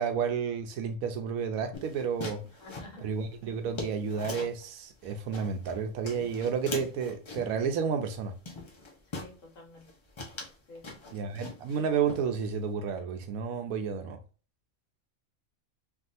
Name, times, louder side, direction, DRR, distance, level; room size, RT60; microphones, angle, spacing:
voice 1, 0.0-2.4 3.0-8.3 11.1-14.2, right 6 dB, 85° right, 1.1 m, -31 dB
sound 1, 1.7-4.6 5.0-5.8 6.0-7.6 8.0-8.2 8.5-9.4 9.8-9.9 10.2-11.8 12.1-12.7, left 3 dB, 40° left, 0.4 m, -41 dB
voice 2, 2.6-3.1 9.1-9.9 10.7-10.8 11.1-11.2, left 1 dB, 65° left, 1.5 m, -49 dB
3.5 x 2.3 x 2.5 m
omnidirectional pair, 1.4 m